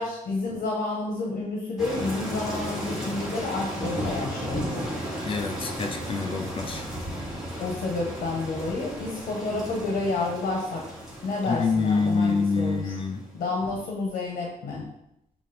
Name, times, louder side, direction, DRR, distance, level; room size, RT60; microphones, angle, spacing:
voice 1, 0.0-4.9 7.6-10.8 11.2-13.0 13.3-14.8, left 3 dB, 70° left, -2 dB, 1.4 m, -30 dB
sound 1, 1.8-13.4, equal, 5° right, 1.9 m, -34 dB
voice 2, 5.3-6.8 11.5-13.2, left 4 dB, 40° left, 5 dB, 0.5 m, -26 dB
7.5 x 3.1 x 4.3 m, 0.81 s
wide cardioid pair, 165°, 14 cm